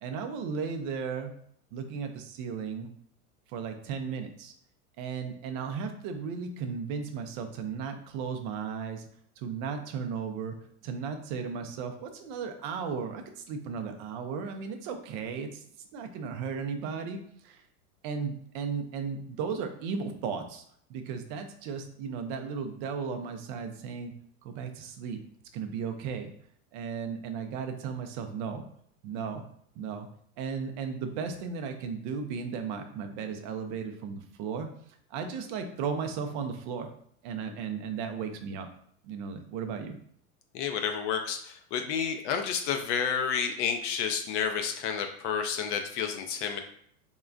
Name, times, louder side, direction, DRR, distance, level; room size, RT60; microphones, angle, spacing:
voice 1, 0.0-1.3 1.7-2.9 3.5-4.5 5.0-9.1 9.4-10.6 10.8-15.7 15.9-17.6 18.0-20.6 20.9-24.1 24.4-25.2 25.5-26.3 26.7-28.6 29.0-29.4 29.8-30.1 30.4-34.7 35.1-36.9 37.2-38.7 39.0-40.0, right 6 dB, 35° right, 6 dB, 0.4 m, -35 dB
voice 2, 40.5-46.6, left 7 dB, 55° left, 5 dB, 0.5 m, -30 dB
3.7 x 2.1 x 2.4 m, 0.64 s
hypercardioid pair, 115°, 44 cm